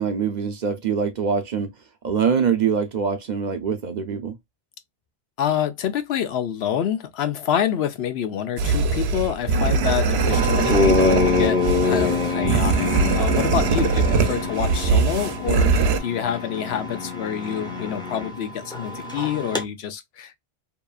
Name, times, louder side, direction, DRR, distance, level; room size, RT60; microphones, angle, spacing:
voice 1, 0.0-1.7 2.0-4.4, right 6 dB, 55° right, 0.6 m, -24 dB
voice 2, 5.4-12.9 13.1-20.4, left 9 dB, 85° left, 0.9 m, -27 dB
sound 1, 8.6-16.0, right 4 dB, 85° right, 0.8 m, -21 dB
sound 2, 10.3-19.6, left 4 dB, 5° left, 0.5 m, -25 dB
2.8 x 2.3 x 2.3 m
omnidirectional pair, 1.0 m